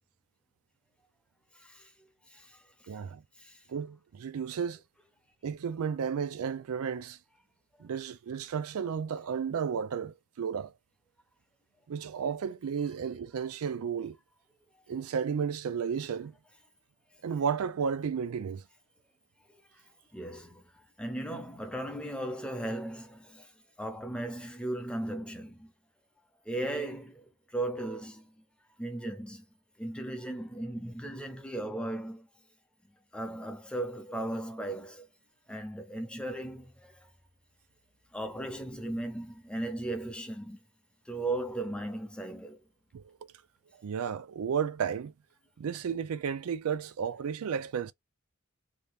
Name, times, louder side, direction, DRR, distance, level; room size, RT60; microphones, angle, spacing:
voice 1, 1.6-1.9 2.3-2.6 3.4-3.6 20.1-23.5 23.8-25.7 26.5-28.3 28.8-29.4 29.8-32.3 33.1-35.1 35.5-37.1 38.1-40.6 41.1-42.6, right 1 dB, 5° left, 0.6 m, -37 dB
voice 2, 2.9-3.2 3.7-4.8 5.4-7.2 7.8-10.7 11.9-14.2 14.9-16.3 17.2-18.6 42.9-43.2 43.8-45.1 45.6-47.9, right 7 dB, 85° right, 0.4 m, -33 dB
2.8 x 2.4 x 3.4 m
head